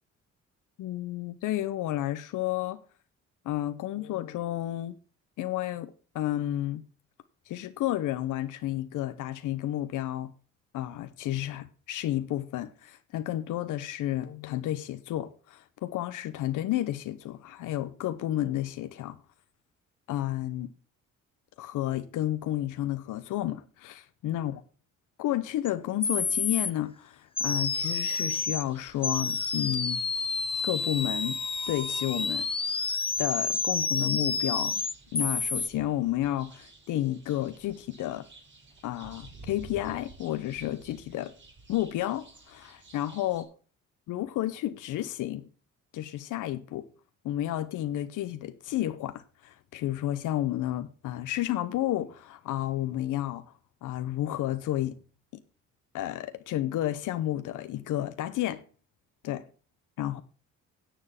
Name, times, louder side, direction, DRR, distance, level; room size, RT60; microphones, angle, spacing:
voice 1, 0.8-2.8 3.4-5.0 5.4-6.8 7.5-10.3 10.7-19.2 20.1-20.7 21.6-24.6 25.2-30.0 30.6-31.4 31.7-32.5 33.2-34.8 35.1-38.3 38.8-41.3 41.7-43.5 44.1-45.5 45.9-46.9 47.2-53.5 53.8-55.0 55.9-58.6 59.2-59.4 60.0-60.2, left 13 dB, 80° left, 0.8 m, -31 dB
sound 1, 25.7-25.8 26.0-26.7 27.4-28.6 29.0-35.7, left 4 dB, 20° left, 0.8 m, -29 dB
sound 2, 27.6-43.4, right 3 dB, 40° right, 3.5 m, -53 dB
10.0 x 7.2 x 5.6 m
cardioid pair, 90°, 30 cm